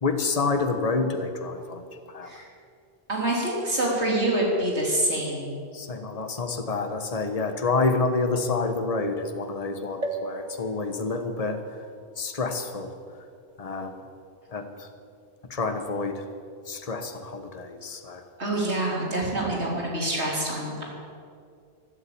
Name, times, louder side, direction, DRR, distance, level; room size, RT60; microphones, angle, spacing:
voice 1, 0.0-1.8 2.1-2.3 5.7-11.6 12.2-12.9 13.6-14.0 14.5-14.9 15.5-16.2 16.7-18.2, left 3 dB, 35° left, 6 dB, 1.2 m, -28 dB
voice 2, 3.1-5.6 18.4-20.8, right 1 dB, 85° right, -2 dB, 3.8 m, -26 dB
sound 1, 10.0-13.7 14.3-14.4 14.6-14.7, right 3 dB, 40° right, 1.2 m, -39 dB
13.0 x 12.5 x 8.6 m, 2.3 s
omnidirectional pair, 1.1 m